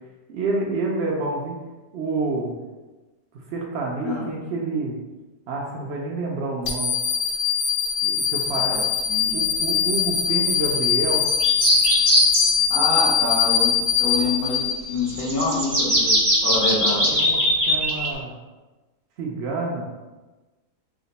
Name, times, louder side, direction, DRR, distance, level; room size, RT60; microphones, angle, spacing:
voice 1, 0.3-1.6 1.9-2.5 3.5-5.0 5.5-6.9 8.0-8.8 9.3-11.3 17.1-18.3 19.2-19.8, right 3 dB, 80° right, -1 dB, 0.5 m, -28 dB
sound 1, 6.6-15.1, left 7 dB, 55° left, 1.0 m, -22 dB
sound 2, 11.2-12.5 15.0-18.1, equal, 25° right, 0.8 m, -20 dB
voice 2, 12.7-16.2 16.4-17.2, left 3 dB, 85° left, -5 dB, 1.6 m, -26 dB
4.8 x 2.1 x 4.0 m, 1.2 s
omnidirectional pair, 1.8 m